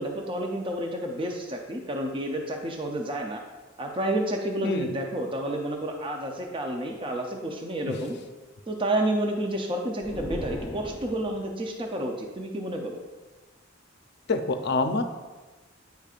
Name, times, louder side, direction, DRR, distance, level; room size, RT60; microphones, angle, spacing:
voice 1, 0.0-3.4 3.8-8.2 8.7-13.0, right 1 dB, 25° right, 2 dB, 0.5 m, -30 dB
sound 1, 10.0-11.7, left 1 dB, 20° left, 0.7 m, -37 dB
voice 2, 14.3-15.0, left 3 dB, 60° left, 7 dB, 0.5 m, -26 dB
9.3 x 5.1 x 2.4 m, 1.3 s
head